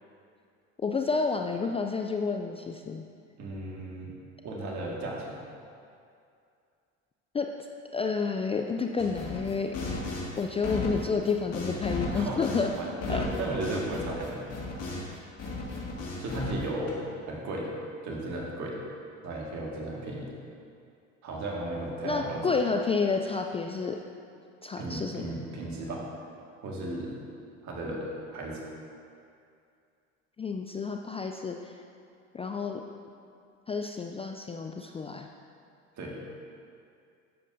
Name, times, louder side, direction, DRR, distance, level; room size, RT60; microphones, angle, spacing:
voice 1, 0.8-3.0 7.3-7.5 7.9-9.7 10.4-12.7 13.1-13.2 22.0-24.0 24.6-25.2 30.4-31.7 32.3-32.8 33.7-35.3, left 4 dB, 20° left, 3 dB, 0.3 m, -30 dB
voice 2, 3.4-4.1 4.4-5.4 12.1-12.4 12.7-14.4 16.2-17.0 17.3-17.7 18.0-18.8 19.2-20.3 21.2-22.5 24.8-26.0 26.6-27.2 27.6-28.6 36.0-36.2, right 2 dB, 55° right, -3 dB, 2.0 m, -35 dB
sound 1, 9.0-15.1 15.4-16.9, left 2 dB, 45° left, 2.1 m, -35 dB
11.0 x 7.4 x 2.7 m, 2.4 s
hypercardioid pair, 75°, 35 cm